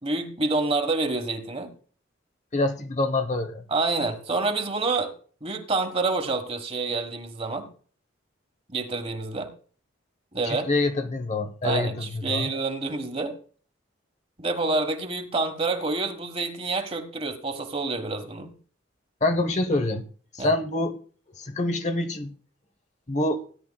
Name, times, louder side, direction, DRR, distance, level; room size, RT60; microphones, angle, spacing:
voice 1, 0.0-1.7 3.7-5.1 5.4-7.7 8.7-9.5 10.3-10.7 11.6-13.3 14.4-18.5 20.4-20.5, right 3 dB, 30° right, 6 dB, 1.4 m, -27 dB
voice 2, 2.5-3.6 10.4-12.5 19.2-20.0 20.3-21.0 21.4-22.3 23.1-23.5, left 2 dB, 35° left, 8 dB, 0.9 m, -26 dB
17.5 x 10.5 x 2.3 m, 0.43 s
head